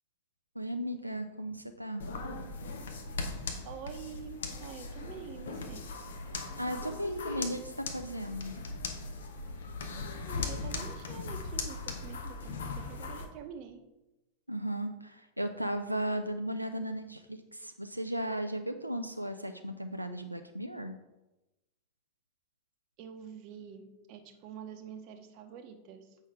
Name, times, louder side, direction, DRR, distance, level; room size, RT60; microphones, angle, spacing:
voice 1, 0.6-2.0 6.6-8.5 14.5-21.0, right 1 dB, 90° right, 6 dB, 0.4 m, -36 dB
sound 1, 2.0-13.2, left 3 dB, 65° left, 0.8 m, -39 dB
voice 2, 3.6-5.9 10.3-13.8 23.0-26.2, right 7 dB, 45° right, 7 dB, 0.8 m, -46 dB
8.1 x 5.5 x 3.4 m, 0.99 s
figure-of-eight pair, 90°, 0 cm